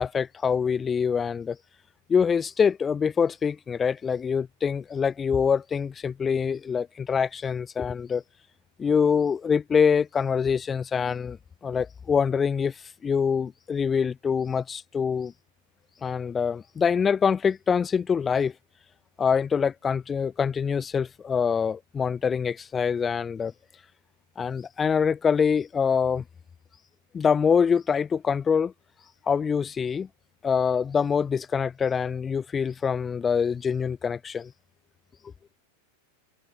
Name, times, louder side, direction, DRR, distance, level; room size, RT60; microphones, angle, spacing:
voice 1, 0.0-1.6 2.1-8.2 8.8-11.4 11.6-15.3 16.0-18.6 19.2-23.5 24.4-26.2 27.1-28.7 29.3-30.1 30.4-34.5, left 6 dB, 20° left, 0.3 m, -25 dB
figure-of-eight pair, 90°, 0 cm